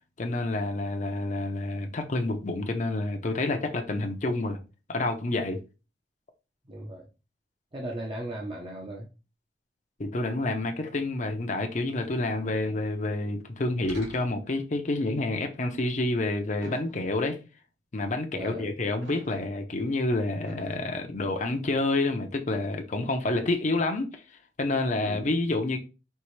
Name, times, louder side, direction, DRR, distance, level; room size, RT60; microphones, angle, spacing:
voice 1, 0.2-4.6 4.9-5.6 10.0-17.4 17.9-24.1 24.6-25.8, left 2 dB, 45° left, 0.7 m, -28 dB
voice 2, 6.7-7.0 7.7-9.1 18.3-18.7 25.0-25.3, right 1 dB, 30° right, 0.7 m, -37 dB
sound 1, 13.8-14.6 16.6-17.3 19.0-19.7 20.5-20.8, right 1 dB, 85° right, 1.3 m, -47 dB
4.6 x 3.1 x 3.2 m
head